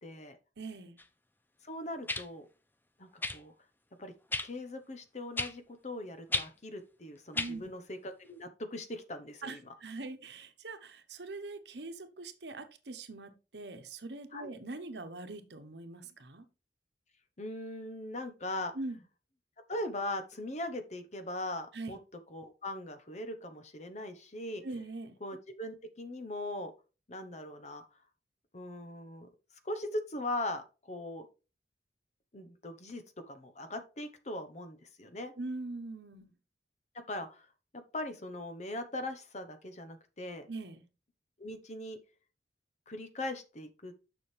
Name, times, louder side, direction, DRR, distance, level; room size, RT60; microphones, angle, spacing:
voice 1, 0.0-0.4 1.6-2.5 3.0-3.5 4.0-4.1 4.4-9.6 14.3-14.5 17.4-18.7 19.7-22.0 22.3-24.6 25.2-26.7 27.1-27.8 28.5-29.3 29.6-31.3 32.3-35.3 37.1-37.5 37.9-40.5 41.4-42.0 42.9-43.9, left 1 dB, 40° left, 1.0 m, -40 dB
voice 2, 0.6-1.0 7.3-7.7 9.4-16.4 18.7-19.0 21.7-21.9 24.6-25.2 35.4-36.3 40.5-40.8, right 2 dB, 70° right, 1.0 m, -42 dB
sound 1, 1.0-1.1 2.1-2.3 3.2-3.4 4.3-4.5 5.4-5.5 6.3-6.5 7.3-7.5 8.5-8.6, left 2 dB, 10° left, 0.5 m, -32 dB
7.1 x 6.3 x 3.3 m
head